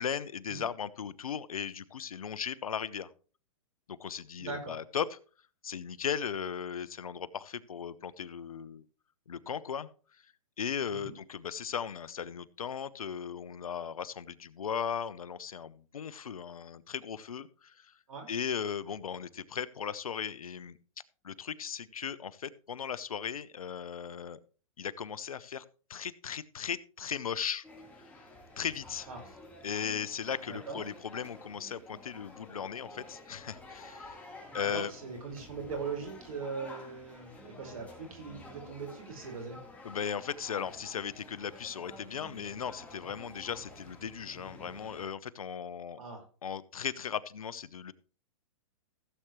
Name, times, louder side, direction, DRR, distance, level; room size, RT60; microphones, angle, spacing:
voice 1, 0.0-3.1 3.9-5.2 5.6-8.8 9.3-9.9 10.6-17.9 18.3-20.8 21.2-24.4 24.8-25.6 25.9-27.7 28.0-28.2 28.6-29.1 29.6-34.3 34.5-34.9 39.8-46.0 46.4-47.9, left 7 dB, 90° left, 17 dB, 0.8 m, -37 dB
voice 2, 4.4-4.8 10.9-11.1 18.1-18.3 29.1-29.2 30.4-30.8 34.5-39.6 46.0-46.2, right 5 dB, 80° right, 3 dB, 5.0 m, -40 dB
sound 1, 27.6-45.0, left 2 dB, 10° left, 3.5 m, -51 dB
16.0 x 8.1 x 3.1 m, 0.39 s
hypercardioid pair, 125°, 18 cm